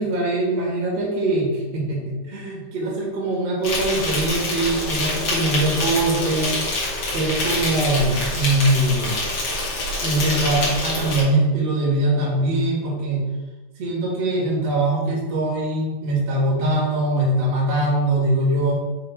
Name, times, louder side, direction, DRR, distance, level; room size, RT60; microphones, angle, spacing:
voice 1, 0.0-6.8 7.1-9.2 10.0-13.2 13.8-18.7, right 1 dB, 55° right, -5 dB, 2.5 m, -22 dB
Insect, 3.6-11.2, left 2 dB, 50° left, 2.2 m, -25 dB
7.1 x 3.4 x 4.5 m, 1.2 s
omnidirectional pair, 4.0 m